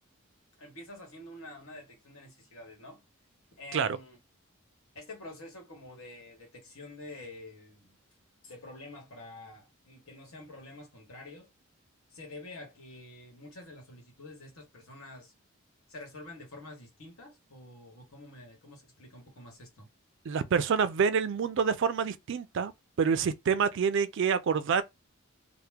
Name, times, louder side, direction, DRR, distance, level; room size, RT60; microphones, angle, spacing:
voice 1, 0.6-3.0 3.6-4.2 4.9-8.0 8.4-11.5 12.1-15.3 15.9-19.9, left 2 dB, 70° left, 1.4 m, -48 dB
voice 2, 20.3-22.7 23.0-24.8, right 6 dB, 55° right, 0.3 m, -27 dB
2.8 x 2.1 x 3.4 m
head